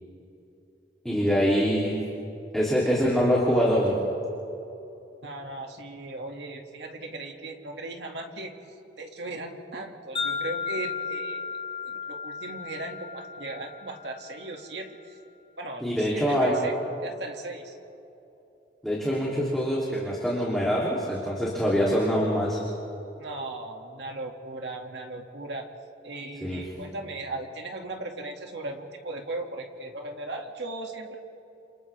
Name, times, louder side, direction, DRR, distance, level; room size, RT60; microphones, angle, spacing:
voice 1, 1.0-2.0 2.5-4.0 15.8-16.6 18.8-22.6 26.4-26.6, equal, ahead, -6 dB, 3.1 m, -24 dB
voice 2, 5.2-8.5 9.0-11.6 11.8-15.2 15.6-17.8 23.2-25.6 26.0-31.2, right 2 dB, 65° right, 2 dB, 2.3 m, -37 dB
Wind chime, 10.2-14.4, left 6 dB, 30° left, 5.6 m, -34 dB
29.5 x 28.0 x 3.5 m, 2.9 s
head